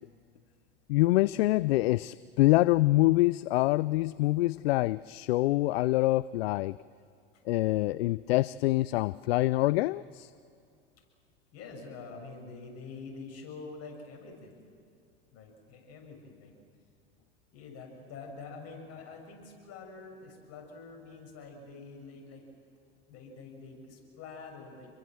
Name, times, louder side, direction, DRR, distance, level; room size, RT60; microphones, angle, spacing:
voice 1, 0.9-6.8 7.5-10.3, left 18 dB, 75° left, 19 dB, 0.5 m, -25 dB
voice 2, 11.5-14.6 15.3-16.5 17.5-22.4 23.1-24.9, left 4 dB, 55° left, 2 dB, 6.9 m, -46 dB
27.5 x 22.5 x 7.7 m, 2.5 s
hypercardioid pair, 90°, 31 cm